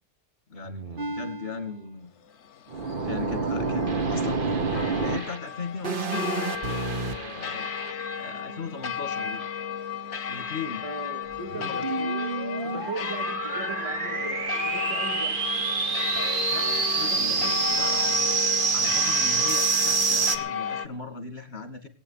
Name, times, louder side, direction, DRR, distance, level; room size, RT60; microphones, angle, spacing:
voice 1, 0.5-2.1 3.0-7.7 8.1-9.5 10.3-10.8 11.5-12.0 16.5-18.3 18.7-21.9, left 4 dB, 70° left, 9 dB, 2.9 m, -38 dB
sound 1, 0.7-1.6 2.7-5.4 5.8-7.9 11.5-20.4, right 4 dB, 50° right, 1.4 m, -27 dB
sound 2, 2.3-20.9, left 8 dB, 90° left, 1.2 m, -34 dB
voice 2, 10.8-12.1 12.6-15.4 17.0-17.8, right 3 dB, 30° right, 2 dB, 2.3 m, -39 dB
21.0 x 9.1 x 5.8 m, 0.37 s
omnidirectional pair, 1.1 m